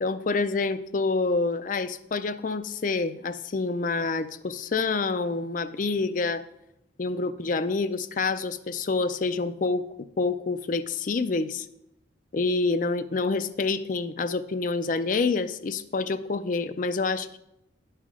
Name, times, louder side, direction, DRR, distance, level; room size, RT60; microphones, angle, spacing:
voice 1, 0.0-6.4 7.0-9.8 10.2-11.7 12.3-17.4, left 3 dB, 45° left, 13 dB, 0.4 m, -27 dB
10.5 x 5.6 x 4.8 m, 0.82 s
head